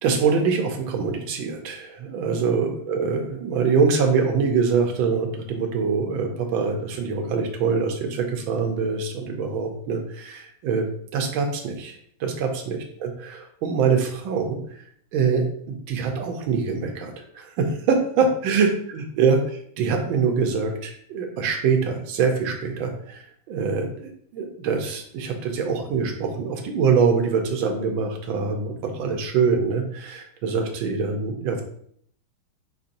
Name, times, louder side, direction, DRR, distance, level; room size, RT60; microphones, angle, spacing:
voice 1, 0.0-10.9 11.1-14.6 15.1-31.6, right 5 dB, 85° right, 3 dB, 1.5 m, -24 dB
5.0 x 4.1 x 2.6 m, 0.64 s
omnidirectional pair, 2.1 m